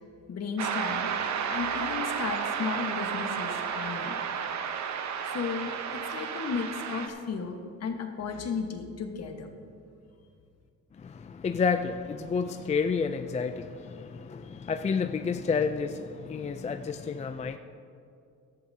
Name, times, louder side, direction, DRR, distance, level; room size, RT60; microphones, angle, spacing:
voice 1, 0.3-1.1 1.5-4.2 5.3-9.5, left 5 dB, 55° left, 4 dB, 1.4 m, -34 dB
sound 1, 0.6-7.1, right 7 dB, 65° right, 0.9 m, -32 dB
voice 2, 11.0-17.6, left 5 dB, 25° left, 8 dB, 0.4 m, -30 dB
16.0 x 11.5 x 2.8 m, 2.4 s
cardioid pair, 90°, 30 cm